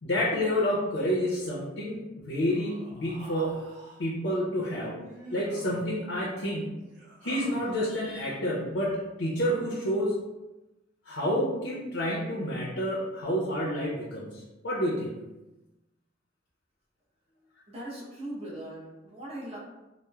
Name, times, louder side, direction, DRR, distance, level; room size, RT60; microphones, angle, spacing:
voice 1, 0.0-3.5 4.0-5.0 5.3-6.7 7.2-10.1 11.1-15.1, equal, 80° left, -6 dB, 0.6 m, -29 dB
Human voice, 2.5-4.0 5.0-5.9 6.8-7.9, right 1 dB, 65° right, 0.5 m, -47 dB
voice 2, 17.7-19.6, right 1 dB, 30° right, -6 dB, 0.7 m, -39 dB
3.0 x 2.0 x 2.2 m, 1.0 s
head